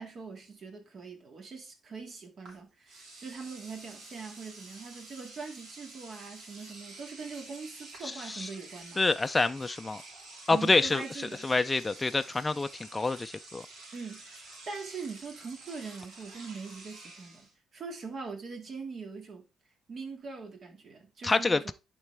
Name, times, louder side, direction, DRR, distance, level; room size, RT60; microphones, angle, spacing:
voice 1, 0.0-9.0 10.5-11.5 13.9-14.4 14.7-19.5 19.9-21.7, right 4 dB, 50° right, 2.0 m, -42 dB
Engine / Domestic sounds home sounds, 2.4-2.6 2.9-17.5, right 2 dB, 75° right, 3.1 m, -49 dB
voice 2, 8.0-8.5 9.0-10.0 10.5-11.0 11.4-13.7 21.2-21.7, left 3 dB, 20° left, 0.4 m, -27 dB
10.5 x 4.2 x 3.4 m
cardioid pair, 90°, 0 cm